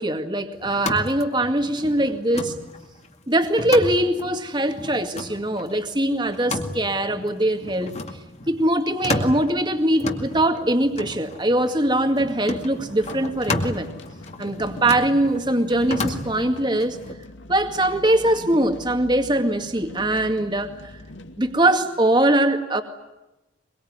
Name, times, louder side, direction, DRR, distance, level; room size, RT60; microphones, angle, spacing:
voice 1, 0.0-2.5 3.3-8.0 8.5-13.9 14.4-17.0 17.5-20.8 21.4-22.8, right 1 dB, 25° right, 7 dB, 2.1 m, -22 dB
sound 1, 0.6-17.1, left 2 dB, 35° left, 2.2 m, -33 dB
sound 2, 12.8-22.3, left 1 dB, 75° left, 2.4 m, -42 dB
24.0 x 23.0 x 9.6 m, 0.99 s
head